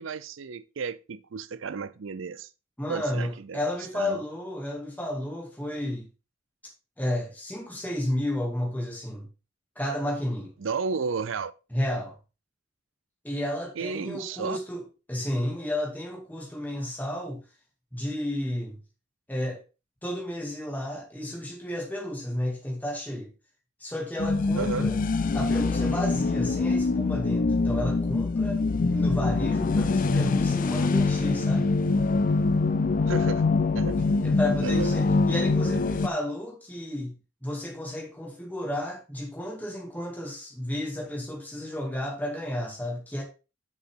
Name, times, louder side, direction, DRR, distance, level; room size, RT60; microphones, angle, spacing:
voice 1, 0.0-2.5 2.9-3.6 3.9-4.2 10.6-11.5 13.8-14.6 24.5-24.9 33.1-33.5 33.7-34.0 34.6-35.0, right 5 dB, 70° right, 0.5 m, -33 dB
voice 2, 2.8-6.1 7.0-9.3 9.8-10.5 11.7-12.1 13.2-14.8 15.1-17.4 17.9-18.8 19.3-19.6 20.0-23.3 23.8-25.0 25.3-31.7 34.0-43.2, left 1 dB, 10° left, 2.2 m, -32 dB
sound 1, 24.2-36.1, left 3 dB, 40° left, 0.4 m, -24 dB
7.1 x 6.1 x 3.6 m
head